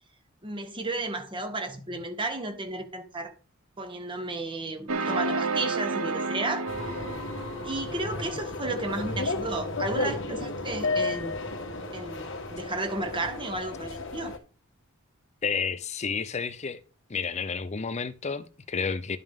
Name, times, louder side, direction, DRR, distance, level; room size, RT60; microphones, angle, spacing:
voice 1, 0.4-3.3 3.8-6.7 7.6-11.3 11.9-14.3, right 2 dB, 25° right, 1.2 m, -33 dB
sound 1, 4.9-7.9, right 3 dB, 80° right, 0.8 m, -30 dB
sound 2, 5.0-12.0, right 4 dB, 55° right, 0.9 m, -48 dB
sound 3, 6.7-14.4, left 3 dB, 65° left, 1.5 m, -33 dB
voice 2, 15.4-16.8 17.1-19.2, left 5 dB, 30° left, 0.5 m, -31 dB
11.0 x 5.4 x 3.6 m
head